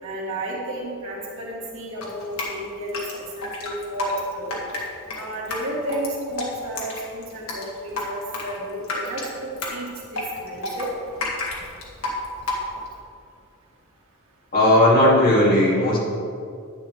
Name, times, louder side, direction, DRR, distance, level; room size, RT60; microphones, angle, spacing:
voice 1, 0.0-4.5 5.1-10.9, right 1 dB, 65° right, -4 dB, 2.3 m, -32 dB
Drip, 2.0-13.0, left 2 dB, 70° left, 1.9 m, -31 dB
voice 2, 14.5-16.0, left 1 dB, 45° left, -6 dB, 2.7 m, -16 dB
10.5 x 9.4 x 3.5 m, 2.3 s
head